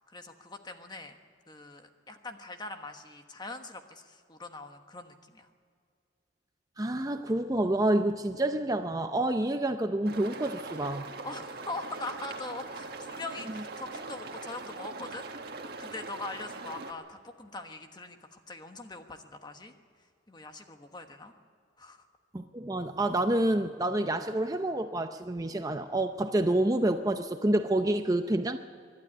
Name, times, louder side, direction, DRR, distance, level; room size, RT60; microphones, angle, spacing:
voice 1, 0.1-1.2 1.5-5.5 11.2-15.3 15.8-19.7 20.3-21.3 21.8-22.0, left 2 dB, 25° left, 6 dB, 1.3 m, -42 dB
voice 2, 6.8-11.1 22.3-28.6, right 1 dB, 20° right, 7 dB, 0.6 m, -28 dB
sound 1, 10.0-16.9, right 3 dB, 55° right, 1.7 m, -41 dB
24.5 x 12.0 x 9.8 m, 2.2 s
head